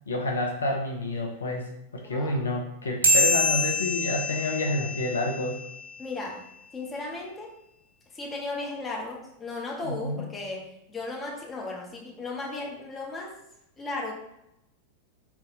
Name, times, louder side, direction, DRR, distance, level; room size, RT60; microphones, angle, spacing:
voice 1, 0.1-1.7 1.9-5.6 9.8-10.1, left 1 dB, 70° left, 1 dB, 0.9 m, -29 dB
voice 2, 2.0-2.5 6.0-6.4 6.7-7.5 8.1-13.3 13.8-14.1, left 3 dB, 20° left, -2 dB, 1.7 m, -35 dB
sound 1, 3.0-5.9, left 1 dB, 75° right, 1.4 m, -26 dB
6.0 x 4.0 x 4.0 m, 0.82 s
figure-of-eight pair, 90°, 0 cm